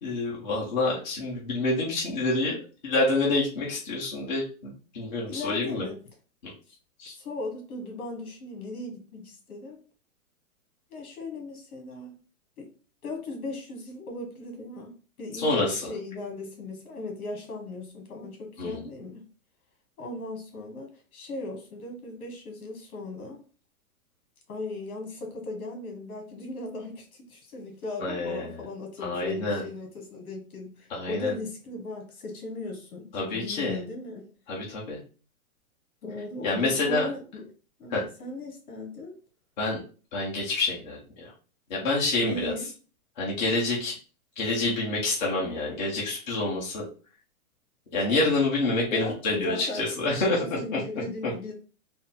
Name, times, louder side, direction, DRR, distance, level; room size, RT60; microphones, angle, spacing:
voice 1, 0.0-5.8 7.0-7.1 15.4-15.8 18.6-18.8 28.0-28.6 29.0-29.6 30.9-31.3 33.1-33.8 34.5-35.0 36.4-37.0 37.9-38.0 39.6-39.8 40.1-41.0 41.7-42.5 43.2-43.9 44.4-46.8 47.9-50.4, left 2 dB, 30° left, -5 dB, 1.0 m, -27 dB
voice 2, 5.2-6.0 6.7-6.8 7.1-9.8 10.9-12.2 12.6-12.7 13.0-19.2 20.0-23.4 24.5-34.3 36.0-37.5 37.8-39.2 42.2-42.6 48.9-49.9 50.2-51.5, left 2 dB, 70° left, 2 dB, 1.7 m, -37 dB
4.0 x 2.0 x 4.1 m, 0.37 s
hypercardioid pair, 175°, 45 cm